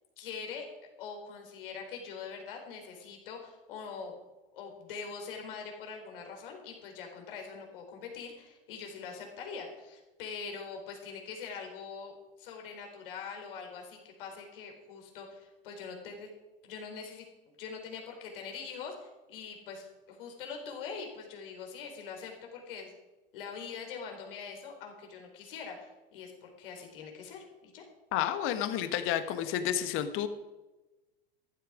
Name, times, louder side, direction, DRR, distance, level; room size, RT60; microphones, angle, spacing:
voice 1, 0.2-0.7 1.0-4.1 4.5-16.3 16.6-17.2 17.6-22.9 23.3-27.9, left 5 dB, 65° left, 2 dB, 4.4 m, -43 dB
voice 2, 28.1-30.3, left 10 dB, 45° left, 9 dB, 1.5 m, -30 dB
14.5 x 12.5 x 5.1 m, 1.1 s
hypercardioid pair, 90°, 29 cm